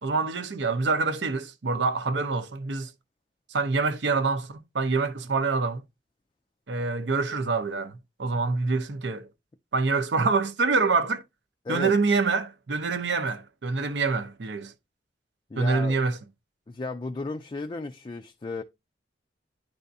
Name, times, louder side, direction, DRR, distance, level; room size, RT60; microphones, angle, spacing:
voice 1, 0.0-2.9 3.5-5.8 6.7-9.3 9.7-11.2 11.7-14.7 15.6-16.2, right 4 dB, 70° right, 0.7 m, -26 dB
voice 2, 15.5-16.0 16.7-18.6, left 3 dB, 25° left, 0.3 m, -34 dB
10.5 x 3.5 x 2.7 m
head